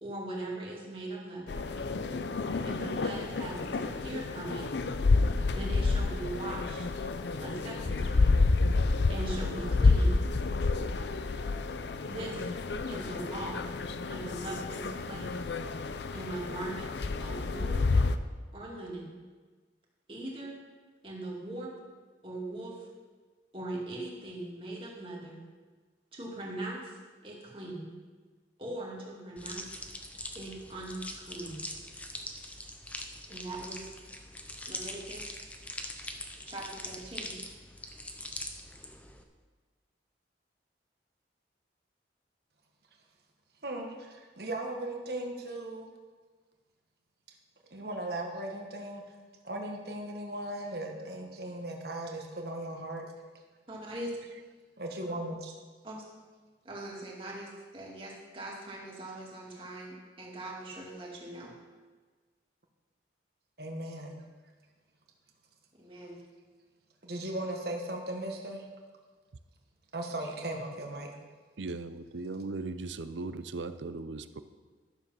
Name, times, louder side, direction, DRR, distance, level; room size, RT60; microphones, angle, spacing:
voice 1, 0.0-1.7 2.6-4.7 5.5-6.9 7.4-8.4 9.1-10.2 12.1-12.5 12.9-13.6 14.1-15.3 16.1-16.9 17.2-17.9 18.5-19.1 20.1-20.6 21.0-21.7 22.2-22.9 23.5-25.4 26.1-26.9 27.2-27.9 28.6-29.6 30.3-31.6 33.3-33.9 34.7-35.3 36.5-37.3 53.7-54.1 55.8-56.1 56.6-61.5 65.8-66.2, right 1 dB, 30° right, -3 dB, 2.3 m, -40 dB
sound 1, 1.5-18.2, left 3 dB, 70° left, 0.5 m, -29 dB
sound 2, 29.4-39.2, left 1 dB, 10° left, 0.7 m, -43 dB
voice 2, 43.6-45.9 47.7-49.0 49.4-53.1 54.8-55.5 63.6-64.2 67.0-68.6 69.9-71.1, right 1 dB, 60° right, 1 dB, 1.5 m, -37 dB
voice 3, 71.6-74.4, right 3 dB, 85° right, 11 dB, 0.6 m, -38 dB
12.0 x 7.1 x 5.6 m, 1.4 s
head